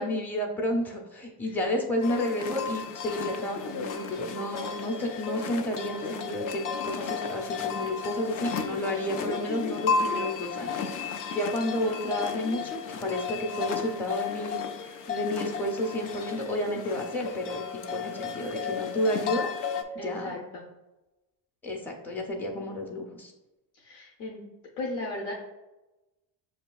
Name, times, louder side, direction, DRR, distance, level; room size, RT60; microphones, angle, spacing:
voice 1, 0.0-19.5 19.9-20.4 21.6-23.3, left 1 dB, 5° left, -1 dB, 0.6 m, -31 dB
sound 1, 2.0-19.8, left 5 dB, 45° left, 0.5 m, -33 dB
voice 2, 20.0-20.6 23.7-24.4 24.8-25.3, left 2 dB, 75° left, -3 dB, 0.9 m, -36 dB
6.4 x 2.7 x 2.3 m, 1.0 s
supercardioid pair, 90°, 47 cm